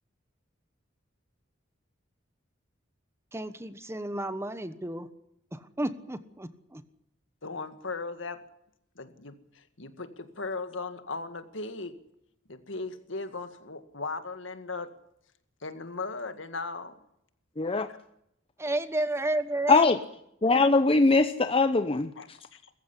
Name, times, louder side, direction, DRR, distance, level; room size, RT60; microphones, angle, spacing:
voice 1, 3.3-5.1 5.5-6.8 18.6-19.8, right 1 dB, 15° right, 12 dB, 1.2 m, -32 dB
voice 2, 7.4-8.4 9.0-11.9 12.5-14.9 15.6-16.9 17.9-18.0 22.2-22.7, left 3 dB, 70° left, 9 dB, 2.1 m, -37 dB
voice 3, 17.6-17.9 19.7-20.0 20.4-22.1, left 3 dB, 30° left, 10 dB, 0.8 m, -21 dB
21.5 x 15.0 x 10.0 m, 0.78 s
head